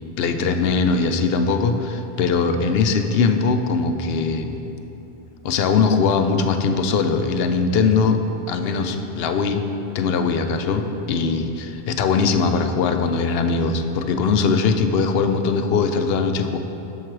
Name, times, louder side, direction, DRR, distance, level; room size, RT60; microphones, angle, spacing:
voice 1, 0.2-4.6 5.4-8.2 8.5-9.6 9.9-16.6, left 5 dB, 75° left, 7 dB, 0.8 m, -21 dB
7.7 x 6.6 x 4.6 m, 2.9 s
omnidirectional pair, 1.0 m